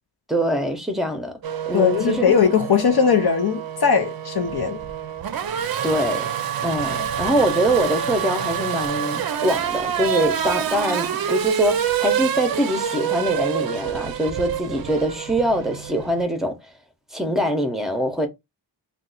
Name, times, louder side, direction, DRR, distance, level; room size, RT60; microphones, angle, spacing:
voice 1, 0.3-1.4 1.7-2.2 5.8-6.3 6.6-16.6 17.1-18.3, equal, ahead, 0.7 m, -23 dB
Race car auto racing / Accelerating revving vroom, 1.4-16.2, right 8 dB, 55° right, 0.5 m, -27 dB
voice 2, 1.7-4.8, left 6 dB, 55° left, 0.6 m, -19 dB
2.6 x 2.3 x 3.9 m
wide cardioid pair, 90°, 45 cm